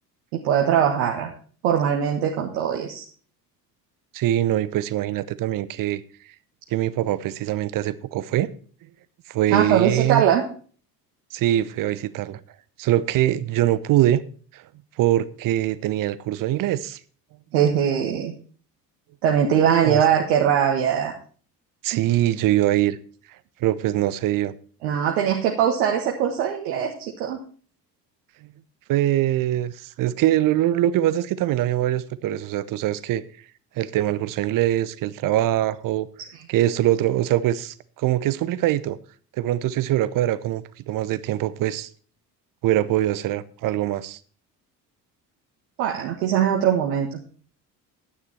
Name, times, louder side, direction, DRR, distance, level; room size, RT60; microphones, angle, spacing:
voice 1, 0.3-1.3 1.6-3.0 9.5-10.5 17.5-18.4 19.2-21.1 24.8-27.4 45.8-47.2, right 9 dB, 65° right, 1.6 m, -21 dB
voice 2, 4.1-6.0 6.7-8.5 9.3-10.2 11.3-12.4 12.8-14.2 14.5-14.6 15.0-17.0 19.8-20.0 21.8-23.0 23.6-24.5 28.4-28.5 28.9-33.2 33.8-36.1 36.5-39.0 39.4-41.9 42.6-44.2, right 13 dB, 40° right, 0.8 m, -23 dB
11.0 x 9.7 x 4.4 m
figure-of-eight pair, 55°, 50 cm